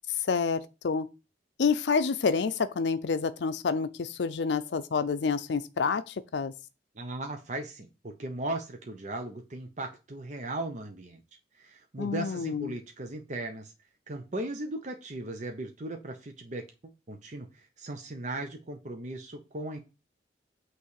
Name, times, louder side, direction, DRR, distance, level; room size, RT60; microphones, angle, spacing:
voice 1, 0.1-1.1 1.6-6.5 12.0-12.7, left 5 dB, 75° left, 0.5 m, -28 dB
voice 2, 6.9-11.2 11.5-13.7 14.1-19.8, right 2 dB, 45° right, 0.8 m, -37 dB
8.4 x 3.2 x 6.4 m
head